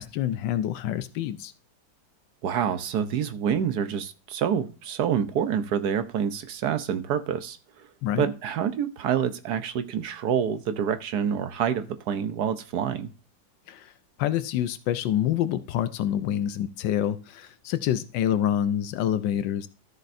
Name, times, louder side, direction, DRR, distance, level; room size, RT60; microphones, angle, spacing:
voice 1, 0.0-1.5 8.0-8.3 13.7-13.9 14.2-19.7, left 11 dB, 85° left, 13 dB, 1.3 m, -27 dB
voice 2, 2.4-7.6 8.2-13.1, right 8 dB, 65° right, 10 dB, 1.3 m, -27 dB
13.0 x 6.7 x 2.6 m, 0.36 s
omnidirectional pair, 2.0 m